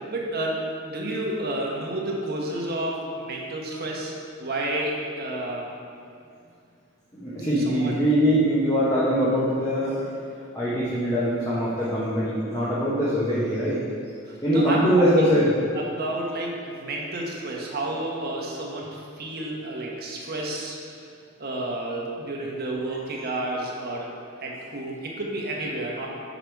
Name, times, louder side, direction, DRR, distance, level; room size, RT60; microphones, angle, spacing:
voice 1, 0.0-5.7 7.5-8.0 14.2-15.4 15.7-21.0 21.4-24.1 24.4-26.1, right 1 dB, 50° right, -2 dB, 1.1 m, -31 dB
voice 2, 7.2-10.0 10.5-13.8 14.4-15.5, equal, 15° left, -9 dB, 1.1 m, -22 dB
6.7 x 5.1 x 4.5 m, 2.4 s
head